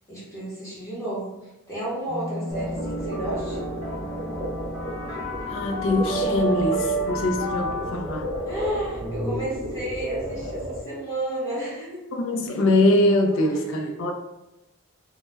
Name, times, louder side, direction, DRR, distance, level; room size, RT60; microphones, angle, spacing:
voice 1, 0.1-3.6 8.4-12.0 13.5-14.0, right 1 dB, 15° left, -8 dB, 0.8 m, -32 dB
sound 1, 2.1-9.1, right 2 dB, 40° right, 0.7 m, -31 dB
sound 2, 2.5-10.8, equal, 25° right, 0.3 m, -33 dB
voice 2, 5.5-8.4 12.1-14.1, left 1 dB, 60° left, 3 dB, 0.3 m, -23 dB
2.2 x 2.0 x 3.1 m, 0.97 s
head